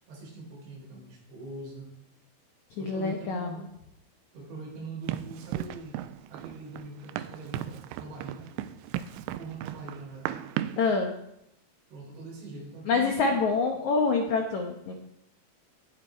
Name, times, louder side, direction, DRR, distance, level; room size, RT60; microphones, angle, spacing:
voice 1, 0.1-1.9 2.8-3.7 4.3-6.0 6.3-8.5 9.2-10.4 11.9-13.5, right 3 dB, 70° right, -3 dB, 6.0 m, -42 dB
voice 2, 2.8-3.5 10.8-11.1 12.9-14.9, left 4 dB, 85° left, 3 dB, 1.6 m, -26 dB
Run, 5.1-10.9, right 12 dB, 90° right, 2.9 m, -36 dB
18.5 x 7.5 x 4.6 m, 0.79 s
omnidirectional pair, 5.2 m